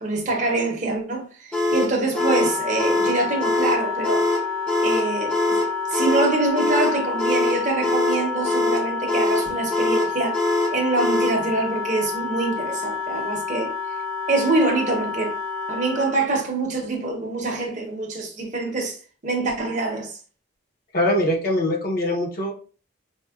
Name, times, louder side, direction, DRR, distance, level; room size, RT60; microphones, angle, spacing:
voice 1, 0.0-4.3 4.8-5.6 5.9-13.7 14.3-15.4 15.7-19.0 19.2-20.1, right 2 dB, 35° right, 0.7 m, -25 dB
sound 1, 1.5-11.4, left 2 dB, 5° left, 0.6 m, -23 dB
Wind instrument woodwind instrument, 2.1-16.2, left 5 dB, 80° left, 1.0 m, -29 dB
voice 2, 20.9-22.5, left 1 dB, 45° left, 0.8 m, -22 dB
4.2 x 2.2 x 2.3 m
head